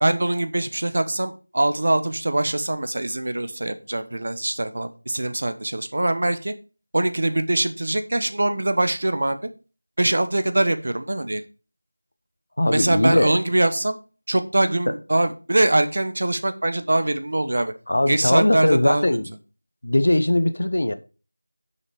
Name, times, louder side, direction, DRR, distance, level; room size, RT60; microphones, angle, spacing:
voice 1, 0.0-6.5 6.9-9.4 10.0-11.4 12.7-14.0 14.3-17.7 18.1-19.0, right 1 dB, 40° right, 1.0 m, -23 dB
voice 2, 12.6-13.3 17.9-19.2 19.8-20.9, left 1 dB, 55° left, 1.0 m, -20 dB
8.8 x 6.4 x 5.0 m
figure-of-eight pair, 180°, 0 cm